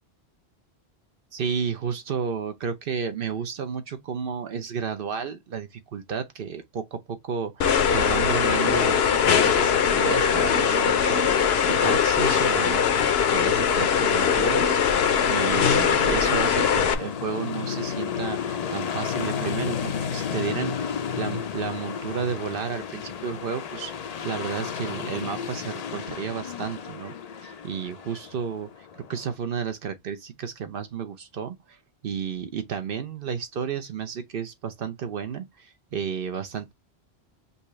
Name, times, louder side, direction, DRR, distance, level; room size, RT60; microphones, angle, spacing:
voice 1, 1.3-27.1 27.4-36.7, right 7 dB, 60° right, 0.8 m, -32 dB
sound 1, 7.6-16.9, left 7 dB, 70° left, 0.9 m, -21 dB
sound 2, 15.9-29.3, left 7 dB, 50° left, 0.5 m, -32 dB
5.4 x 2.5 x 3.0 m
omnidirectional pair, 1.1 m